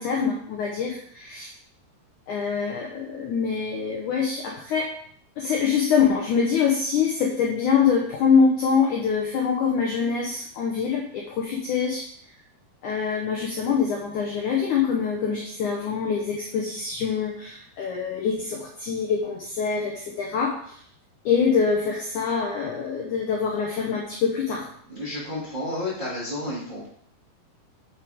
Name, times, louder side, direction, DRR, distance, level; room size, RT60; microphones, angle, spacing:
voice 1, 0.0-1.5 2.3-4.9 5.4-12.0 12.8-20.7 21.3-24.7, left 6 dB, 70° left, -1 dB, 2.0 m, -24 dB
voice 2, 24.9-26.9, left 1 dB, 15° right, -8 dB, 2.0 m, -31 dB
7.8 x 7.6 x 3.6 m, 0.62 s
omnidirectional pair, 4.9 m